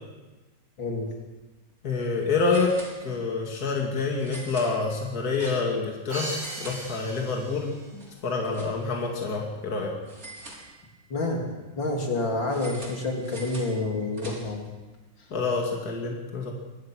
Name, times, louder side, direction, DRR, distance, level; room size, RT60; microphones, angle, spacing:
sound 1, 1.2-1.4 1.7-1.8 2.4-3.4 4.2-5.9 6.2-7.4 7.7-9.1 10.1-11.2 12.5-14.7, right 1 dB, 45° right, 4.6 m, -45 dB
voice 1, 1.8-2.8 3.0-6.3 6.6-7.7 8.2-10.0 15.3-16.5, left 4 dB, 55° left, 0 dB, 2.8 m, -27 dB
Crash cymbal, 6.1-8.0, right 1 dB, 80° right, 6.6 m, -37 dB
voice 2, 11.1-14.7, left 2 dB, 80° left, 1 dB, 4.0 m, -28 dB
23.5 x 18.0 x 6.3 m, 1.2 s
omnidirectional pair, 2.0 m